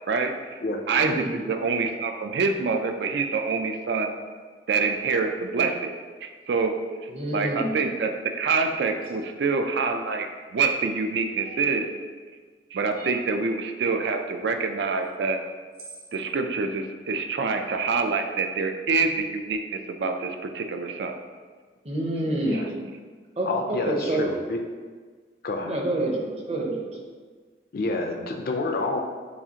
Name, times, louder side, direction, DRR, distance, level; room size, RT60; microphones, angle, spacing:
voice 1, 0.1-0.6 0.9-4.1 4.7-5.9 6.2-6.8 7.0-11.9 12.7-15.4 16.1-21.2 22.5-22.6, right 4 dB, 75° right, 5 dB, 0.4 m, -26 dB
voice 2, 7.1-7.8 21.8-22.8 23.4-24.3 25.6-26.9, right 1 dB, 35° right, -1 dB, 0.7 m, -28 dB
sound 1, 9.0-9.3 11.4-11.8 12.9-13.3 15.0-15.1 15.7-16.1, right 3 dB, 55° right, 1.1 m, -46 dB
voice 3, 23.5-24.6 25.4-25.8 27.7-29.0, left 2 dB, 55° left, 2 dB, 0.4 m, -28 dB
7.0 x 2.4 x 2.8 m, 1.5 s
head